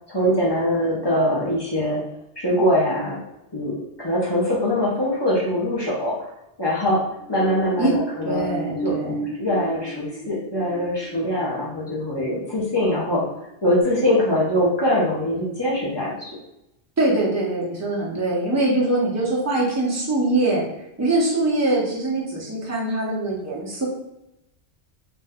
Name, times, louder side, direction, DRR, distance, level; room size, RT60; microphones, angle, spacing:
voice 1, 0.1-2.0 2.4-3.2 3.5-6.3 6.6-7.0 7.3-8.5 8.8-9.0 9.4-13.2 13.6-16.4, left 1 dB, 30° left, -5 dB, 0.6 m, -22 dB
sound 1, 7.2-13.4 13.8-13.9, right 2 dB, 90° left, 0.9 m, -34 dB
voice 2, 8.2-9.2 17.0-20.7 21.0-23.9, right 2 dB, 20° right, -5 dB, 0.6 m, -23 dB
2.5 x 2.2 x 3.5 m, 0.87 s
omnidirectional pair, 1.1 m